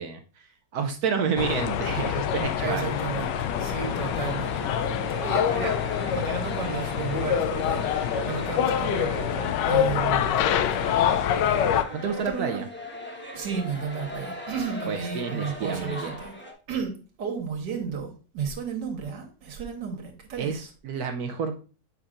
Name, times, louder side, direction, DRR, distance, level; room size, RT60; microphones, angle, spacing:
voice 1, 0.0-2.9 11.9-12.7 14.9-16.2 20.4-21.6, right 6 dB, 70° right, 1.0 m, -30 dB
sound 1, 1.4-11.8, left 9 dB, 85° left, 1.2 m, -26 dB
voice 2, 2.6-10.4 10.7-11.2 11.9-12.7 13.3-16.3 16.7-20.7, right 6 dB, 85° right, 1.9 m, -33 dB
sound 2, 2.7-16.5, left 1 dB, 10° left, 0.9 m, -40 dB
7.9 x 5.7 x 2.5 m
omnidirectional pair, 1.8 m